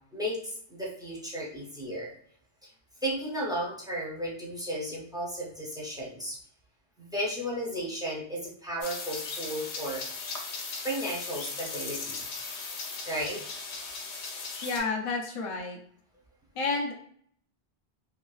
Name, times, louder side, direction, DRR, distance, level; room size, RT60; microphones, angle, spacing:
voice 1, 0.1-2.1 2.6-2.7 3.0-6.4 7.0-10.0 10.8-12.3 13.1-13.4, equal, 5° right, -5 dB, 0.4 m, -34 dB
sound 1, 8.8-14.8, left 4 dB, 80° left, 0.9 m, -37 dB
voice 2, 14.6-15.8 16.5-16.9, left 3 dB, 65° left, 1 dB, 0.3 m, -30 dB
2.9 x 2.4 x 2.3 m, 0.62 s
omnidirectional pair, 1.1 m